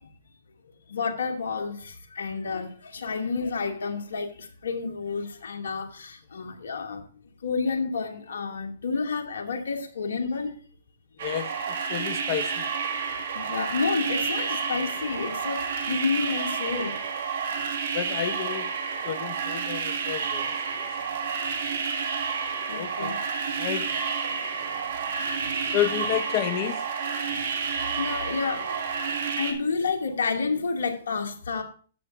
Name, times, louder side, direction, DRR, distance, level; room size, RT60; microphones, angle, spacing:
voice 1, 0.9-1.8 2.2-2.7 2.9-4.3 4.6-7.0 7.4-10.6 13.4-15.6 15.9-17.0 22.7-23.2 23.7-23.8 27.2-27.5 28.0-28.8 29.4-31.6, left 4 dB, 75° left, 2.1 m, -29 dB
sound 1, 11.2-29.5, right 6 dB, 65° right, 1.9 m, -30 dB
voice 2, 11.9-12.6 17.9-18.7 19.0-20.4 20.8-20.9 22.7-23.2 23.6-24.0 25.7-26.9, left 11 dB, 45° left, 1.1 m, -30 dB
13.5 x 8.3 x 2.5 m
hypercardioid pair, 125°, 0 cm